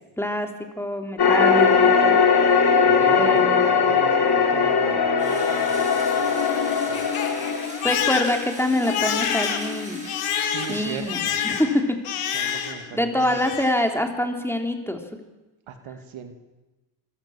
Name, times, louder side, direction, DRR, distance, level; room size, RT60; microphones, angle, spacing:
voice 1, 0.2-0.5 0.8-2.2 3.1-3.6 7.8-10.0 10.4-12.0 12.3-15.0, left 1 dB, 5° left, 5 dB, 3.3 m, -25 dB
sound 1, 1.2-7.7, left 5 dB, 50° left, 3.9 m, -19 dB
voice 2, 2.8-3.5 3.8-6.0 6.9-7.0 10.4-11.4 12.3-13.4 15.7-16.3, right 7 dB, 75° right, 7 dB, 2.5 m, -39 dB
Engine / Drill, 5.2-11.7, right 1 dB, 15° right, 7.3 m, -41 dB
Crying sobbing, 5.9-12.9 13.2-13.8, left 8 dB, 85° left, 2.3 m, -28 dB
24.5 x 16.0 x 7.3 m, 1.1 s
cardioid pair, 70°, 48 cm